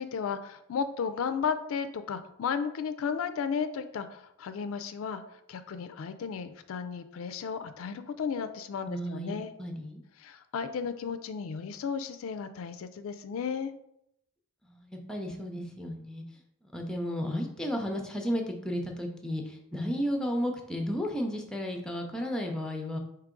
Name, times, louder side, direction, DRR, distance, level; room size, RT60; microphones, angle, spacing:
voice 1, 0.0-5.2 5.5-9.5 10.2-13.7, left 6 dB, 70° left, 10 dB, 0.3 m, -34 dB
voice 2, 8.9-10.0 14.6-16.2 16.6-23.0, equal, 5° left, 2 dB, 0.5 m, -33 dB
4.7 x 2.8 x 3.7 m, 0.76 s
head